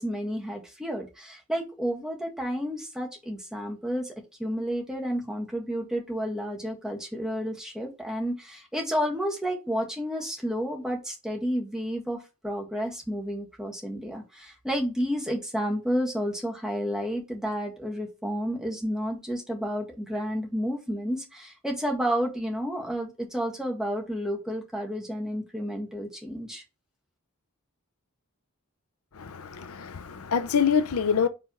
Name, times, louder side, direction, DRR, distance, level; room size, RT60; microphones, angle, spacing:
voice 1, 0.0-4.1 4.4-12.2 12.4-26.6, equal, 5° right, 1.7 m, -31 dB
voice 2, 29.2-31.3, left 7 dB, 75° left, 0.7 m, -25 dB
5.0 x 3.4 x 5.5 m
head